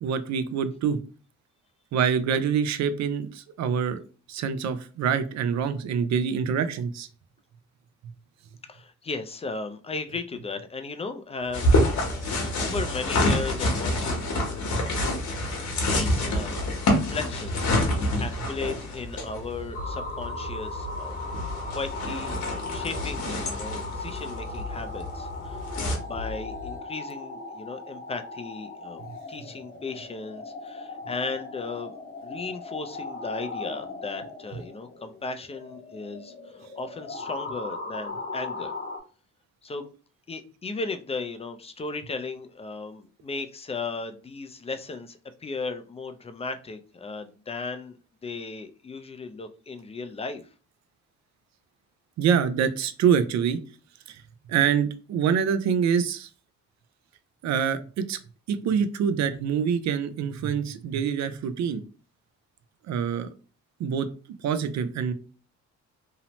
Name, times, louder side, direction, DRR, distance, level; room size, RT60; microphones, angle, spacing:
voice 1, 0.0-1.0 1.9-4.0 4.3-7.1 52.2-53.6 54.1-54.2 54.5-56.3 57.4-58.2 58.5-61.8 62.9-63.3 63.8-64.1 64.4-65.1, right 7 dB, 65° right, 11 dB, 0.5 m, -25 dB
voice 2, 8.7-11.7 12.4-14.3 15.8-21.2 21.7-29.0 29.3-31.9 32.2-36.3 36.8-38.7 39.6-39.9 40.3-48.0 48.2-50.4, left 4 dB, 20° left, 9 dB, 0.3 m, -36 dB
sound 1, 11.4-26.8, left 4 dB, 45° right, 1.2 m, -40 dB
sound 2, 11.5-26.0, left 1 dB, 70° left, 1.0 m, -27 dB
sound 3, 19.7-39.0, left 3 dB, 35° left, 0.8 m, -38 dB
2.8 x 2.0 x 2.9 m, 0.36 s
cardioid pair, 90°, 30 cm